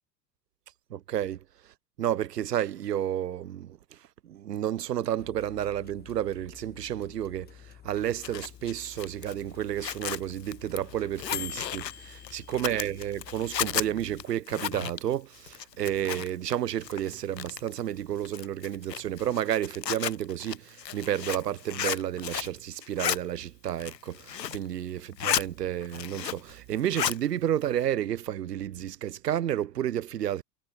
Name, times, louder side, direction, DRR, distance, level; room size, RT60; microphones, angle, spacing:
voice 1, 0.9-30.4, right 11 dB, 75° right, 0.8 m, -31 dB
sound 1, 5.2-14.2, left 9 dB, 20° left, 0.9 m, -46 dB
Zipper (clothing), 8.0-16.5 16.8-17.8 18.3-22.6 22.8-23.2 23.7-24.7 25.0-25.5 25.8-26.5 26.8-27.2, left 9 dB, 80° left, 0.8 m, -34 dB
sound 2, 14.5-29.4, right 24 dB, 45° right, 6.9 m, -59 dB
figure-of-eight pair, 80°, 49 cm